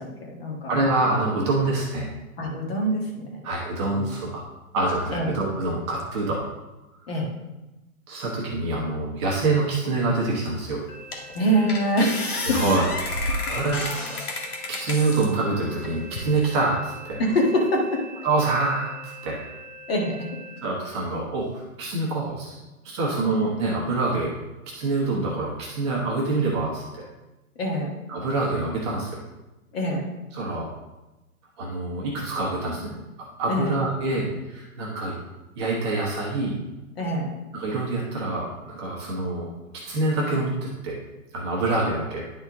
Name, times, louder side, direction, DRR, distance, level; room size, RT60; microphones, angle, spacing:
voice 1, 0.0-0.7 2.4-3.4 3.9-4.1 5.1-5.5 7.1-7.3 11.3-12.6 17.2-18.0 19.9-20.3 27.6-28.0 29.7-30.1 33.5-33.7 37.0-37.3, equal, 45° left, 0 dB, 1.7 m, -25 dB
voice 2, 0.7-2.1 3.4-4.5 4.7-6.5 8.1-10.8 12.4-12.9 13.2-13.9 14.7-17.2 18.2-19.4 20.6-24.4 24.7-27.0 28.1-29.2 30.3-30.7 31.6-35.2 35.6-36.6 37.5-41.0 41.3-42.3, right 2 dB, 20° right, -4 dB, 1.0 m, -26 dB
sound 1, 10.5-10.6 11.1-11.4 11.7-15.3 15.8-16.5, left 2 dB, 90° left, 1.9 m, -31 dB
sound 2, 10.9-20.6, right 2 dB, 70° left, 2.6 m, -43 dB
10.5 x 4.4 x 3.6 m, 1.0 s
hypercardioid pair, 155°, 43 cm